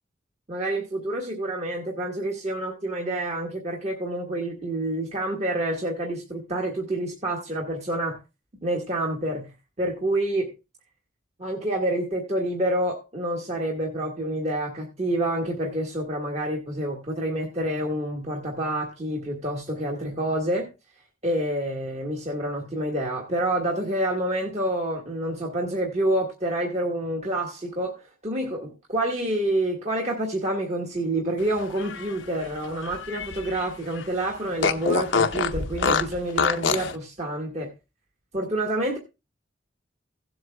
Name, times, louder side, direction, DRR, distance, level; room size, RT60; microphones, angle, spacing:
voice 1, 0.5-8.2 8.6-10.5 11.4-20.7 21.2-37.7 38.3-39.0, right 1 dB, 35° right, 0 dB, 1.4 m, -28 dB
Fart, 31.6-33.7 34.0-34.1 34.6-36.9, left 5 dB, 90° left, 0.8 m, -26 dB
16.5 x 7.8 x 2.3 m, 0.27 s
head